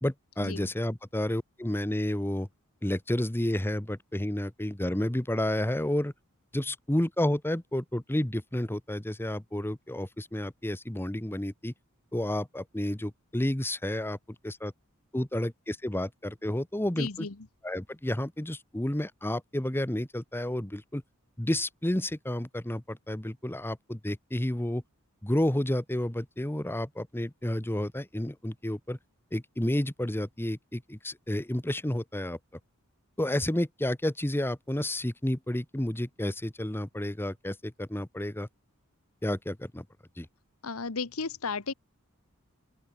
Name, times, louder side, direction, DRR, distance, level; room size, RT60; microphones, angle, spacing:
voice 1, 0.0-2.5 2.8-6.1 6.5-11.7 12.1-14.2 14.4-14.7 15.1-17.3 17.6-21.0 21.4-24.8 25.2-29.0 29.3-32.4 33.2-38.5 39.2-39.8 40.2-40.3, left 1 dB, 10° left, 1.1 m, -31 dB
voice 2, 17.0-17.3 40.6-41.7, left 4 dB, 75° left, 1.3 m, -34 dB
open air
head